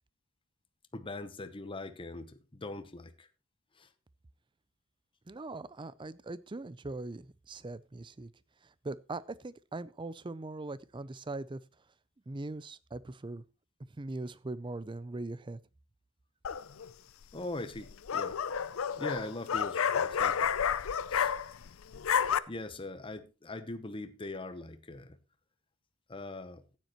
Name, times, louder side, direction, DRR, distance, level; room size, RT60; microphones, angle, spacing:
voice 1, 0.9-3.3 3.8-3.9 17.3-18.4 19.0-20.5 21.1-21.3 22.5-25.2 26.1-26.6, left 2 dB, 25° left, 0.8 m, -41 dB
voice 2, 5.3-8.3 8.8-11.6 12.3-13.4 14.0-15.6, right 2 dB, 20° right, 0.5 m, -40 dB
sound 1, 16.4-16.9 17.8-21.7 21.9-22.4, left 7 dB, 70° left, 0.5 m, -30 dB
14.5 x 9.3 x 3.0 m
head